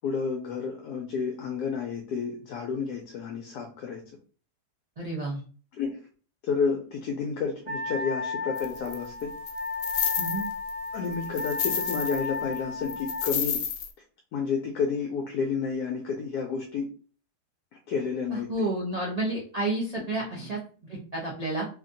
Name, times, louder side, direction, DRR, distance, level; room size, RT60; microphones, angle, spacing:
voice 1, 0.0-4.0 5.7-6.0 6.4-9.3 10.9-13.6 14.3-16.9 17.9-18.7, left 5 dB, 75° left, 1 dB, 1.1 m, -30 dB
voice 2, 5.0-5.4 10.2-10.5 18.3-20.6 20.9-21.7, right 2 dB, 80° right, -4 dB, 0.3 m, -30 dB
Wind instrument woodwind instrument, 7.7-13.3, left 4 dB, 60° right, 1.6 m, -34 dB
sound 1, 8.6-8.9 9.5-10.7 11.1-12.3 12.5-12.6 12.9-13.9, left 8 dB, 90° left, 1.2 m, -30 dB
3.2 x 2.6 x 2.5 m, 0.40 s
omnidirectional pair, 1.8 m